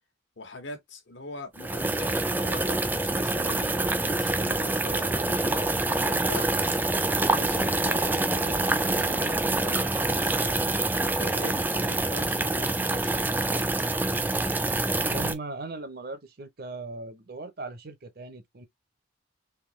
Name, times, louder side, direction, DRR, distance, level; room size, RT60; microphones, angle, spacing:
voice 1, 0.4-6.5 7.2-10.6 11.0-13.7, left 2 dB, 65° left, 1.2 m, -42 dB
sound 1, 1.6-15.3, right 2 dB, 10° right, 0.4 m, -26 dB
voice 2, 15.0-18.7, right 3 dB, 50° right, 0.8 m, -38 dB
3.6 x 2.8 x 3.1 m
head